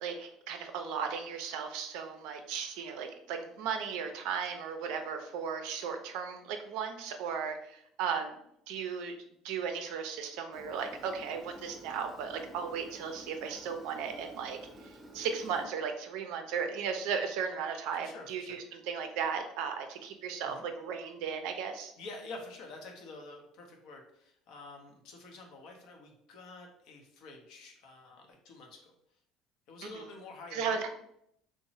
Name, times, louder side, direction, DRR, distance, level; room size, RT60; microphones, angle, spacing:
voice 1, 0.0-8.4 8.7-9.1 9.4-21.9 30.5-30.9, right 6 dB, 80° right, 6 dB, 0.4 m, -36 dB
Engine, 10.5-15.7, right 1 dB, 25° right, 0.7 m, -51 dB
voice 2, 18.0-18.6 20.4-20.7 22.0-28.9 29.7-30.8, left 2 dB, 70° left, 2 dB, 0.6 m, -48 dB
2.9 x 2.0 x 2.7 m, 0.74 s
supercardioid pair, 85°, 0 cm